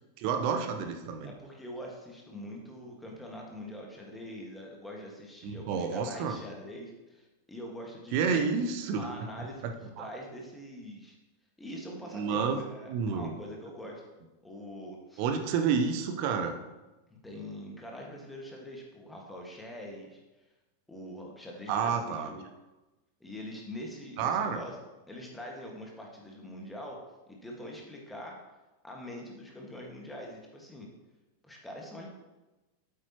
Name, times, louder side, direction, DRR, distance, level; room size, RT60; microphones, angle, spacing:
voice 1, 0.2-1.3 5.4-6.4 8.1-9.1 9.6-10.1 12.1-12.6 12.9-13.4 15.2-16.6 21.7-22.3 24.2-24.6, right 6 dB, 45° right, 6 dB, 0.9 m, -29 dB
voice 2, 1.2-8.5 9.0-11.2 11.6-14.0 14.4-15.2 17.1-20.2 20.9-22.5 23.2-24.8 25.1-27.0 27.4-28.4 28.8-30.9 31.4-32.1, left 1 dB, 5° left, -1 dB, 1.7 m, -44 dB
8.6 x 8.4 x 3.0 m, 1.1 s
figure-of-eight pair, 90°, 0 cm